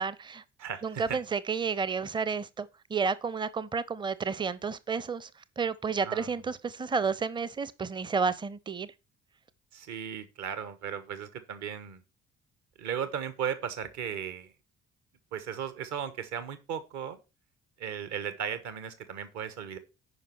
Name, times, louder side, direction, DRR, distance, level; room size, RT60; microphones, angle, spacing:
voice 1, 0.0-0.4 0.8-5.3 5.6-8.9, right 5 dB, 15° right, 0.6 m, -31 dB
voice 2, 0.6-1.2 6.0-6.3 9.7-12.0 12.8-14.5 15.3-17.2 17.8-19.8, right 8 dB, 55° right, 1.3 m, -36 dB
9.6 x 5.5 x 4.6 m
figure-of-eight pair, 45°, 34 cm